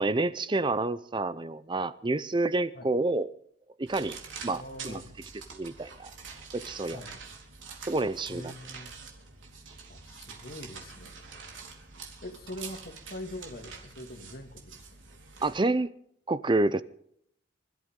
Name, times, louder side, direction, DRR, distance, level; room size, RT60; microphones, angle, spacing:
voice 1, 0.0-3.3 3.8-4.2 4.4-5.0 5.5-6.1 6.5-7.0 7.9-8.5 15.4-15.9 16.3-16.8, right 2 dB, 25° right, 0.5 m, -28 dB
sound 1, 3.9-15.6, right 5 dB, 80° right, 4.0 m, -46 dB
voice 2, 4.5-5.2 6.9-7.1 8.3-9.0 9.9-11.2 12.2-14.8, left 1 dB, 50° left, 2.3 m, -43 dB
27.0 x 13.5 x 3.7 m
head